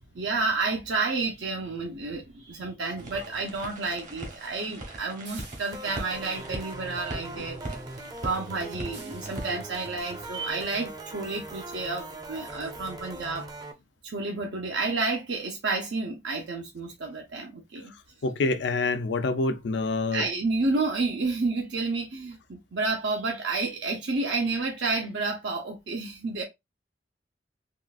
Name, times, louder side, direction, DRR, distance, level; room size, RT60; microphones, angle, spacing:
voice 1, 0.1-7.6 8.2-13.5 14.0-17.9 20.1-26.4, right 3 dB, 90° right, 0.7 m, -30 dB
sound 1, 3.0-9.5, right 1 dB, 45° right, 0.9 m, -40 dB
sound 2, 5.2-6.2 8.9-9.7 11.2-11.3 11.8-12.0 12.3-12.4 12.7-12.8, right 4 dB, 75° right, 1.4 m, -49 dB
sound 3, 5.7-13.7, right 2 dB, 20° right, 0.5 m, -40 dB
voice 2, 17.9-20.2, left 3 dB, 75° left, 0.5 m, -27 dB
3.7 x 2.3 x 2.4 m
head